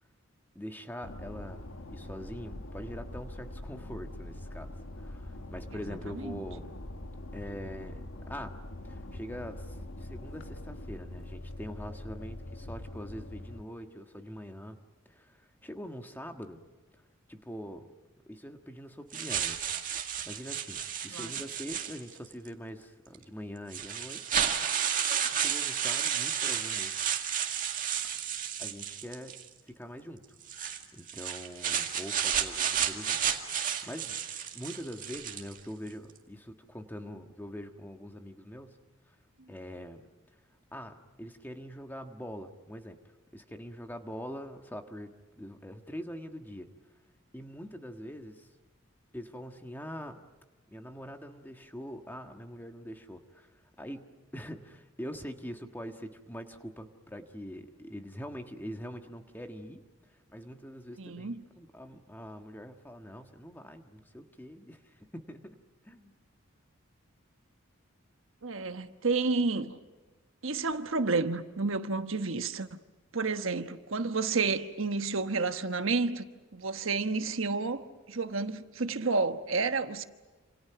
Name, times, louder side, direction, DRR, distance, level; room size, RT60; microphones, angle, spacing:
voice 1, 0.5-6.7 7.3-8.6 8.8-16.6 17.3-17.9 18.3-19.9 20.2-24.4 25.3-27.0 28.6-30.4 30.7-34.2 34.5-38.8 39.1-39.2 39.5-40.1 40.7-43.0 43.3-46.7 47.3-48.5 49.1-50.3 50.7-65.6 65.8-66.1, equal, 10° left, 1.5 m, -44 dB
sound 1, 1.0-13.6, left 1 dB, 70° left, 1.6 m, -43 dB
voice 2, 6.1-6.4 21.1-21.3 61.0-61.4 68.4-69.8 70.4-72.8 73.1-80.0, right 4 dB, 70° right, 1.2 m, -30 dB
sound 2, 19.1-22.3 23.1-23.2 23.7-29.5 30.4-35.6, right 8 dB, 40° right, 2.1 m, -32 dB
28.5 x 27.5 x 5.9 m
head